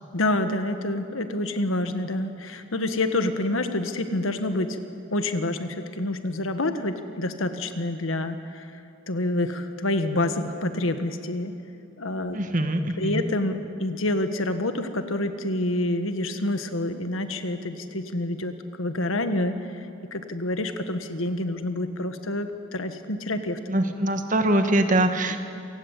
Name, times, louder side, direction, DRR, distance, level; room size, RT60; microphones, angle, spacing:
voice 1, 0.1-4.8 5.1-8.8 9.1-11.6 12.0-12.4 13.0-23.6 25.3-25.4, left 1 dB, 90° left, 8 dB, 1.6 m, -27 dB
voice 2, 12.3-13.2 23.7-25.4, right 1 dB, 40° right, 7 dB, 1.5 m, -23 dB
27.5 x 17.5 x 8.4 m, 2.6 s
head